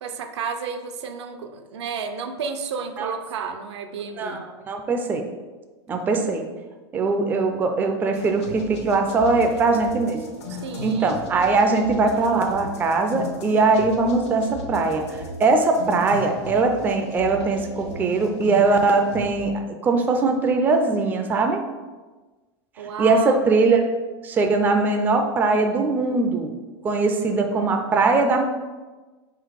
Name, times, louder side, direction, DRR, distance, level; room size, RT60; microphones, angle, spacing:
voice 1, 0.0-4.4 10.6-11.2 22.8-23.4, right 6 dB, 80° right, 7 dB, 0.5 m, -32 dB
voice 2, 4.7-5.2 5.9-6.4 6.9-10.3 10.8-15.1 15.4-21.6 23.0-23.8 24.2-26.6 26.8-28.4, right 3 dB, 15° right, 4 dB, 0.3 m, -21 dB
sound 1, 8.1-19.4, left 2 dB, 75° left, 0.8 m, -37 dB
3.7 x 2.9 x 4.8 m, 1.3 s
supercardioid pair, 135°, 14 cm